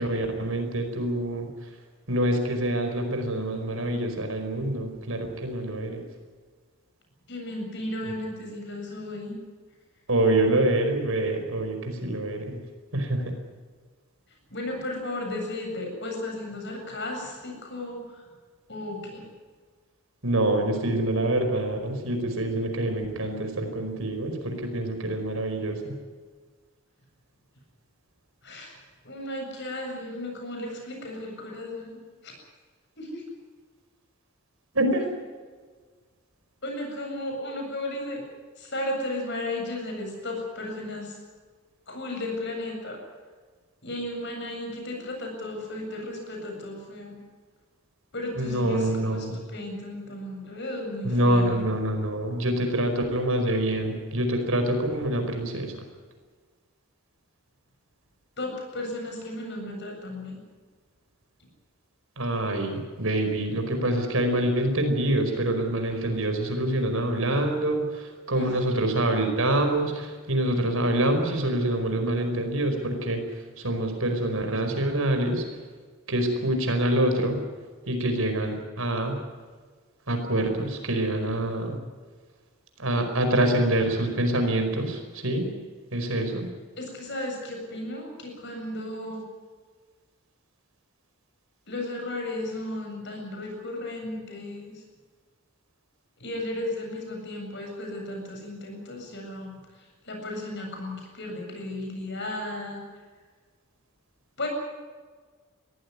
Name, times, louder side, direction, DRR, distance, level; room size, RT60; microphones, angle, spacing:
voice 1, 0.0-1.5 2.1-6.0 10.1-12.6 12.9-13.2 20.2-25.9 34.7-35.0 48.4-49.4 51.0-55.8 62.2-73.2 73.6-75.4 76.1-77.4 77.9-79.2 80.1-81.8 82.8-85.5 85.9-86.5, right 1 dB, 70° right, 5 dB, 4.9 m, -26 dB
voice 2, 7.3-9.4 14.5-18.3 18.7-19.2 28.4-28.8 29.0-32.4 33.0-33.2 34.9-35.0 36.6-38.2 38.6-41.2 41.9-43.0 43.8-47.2 48.1-51.8 58.4-60.4 61.4-61.5 68.3-68.5 86.8-89.2 91.7-94.8 96.2-102.8 104.4-104.5, left 1 dB, 50° left, 2 dB, 7.6 m, -34 dB
22.0 x 15.5 x 9.8 m, 1.5 s
head